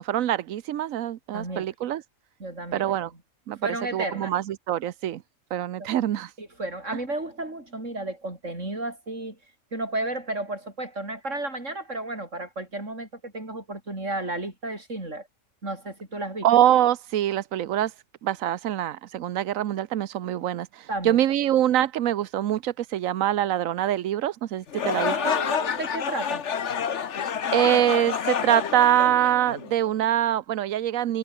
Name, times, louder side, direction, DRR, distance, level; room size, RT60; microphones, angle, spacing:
voice 1, 0.0-2.0 2.7-3.1 3.5-3.6 3.9-5.2 5.5-6.3 16.4-17.9 18.2-25.3 27.5-31.2, right 11 dB, 85° right, 1.2 m, -24 dB
voice 2, 1.3-1.7 2.4-3.1 3.6-4.3 5.8-5.9 6.4-9.4 9.7-15.3 15.6-16.5 20.9-21.2 25.0-26.4, right 2 dB, 65° right, 6.6 m, -33 dB
sound 1, 24.7-29.9, left 7 dB, 60° left, 1.4 m, -28 dB
omnidirectional pair, 1.4 m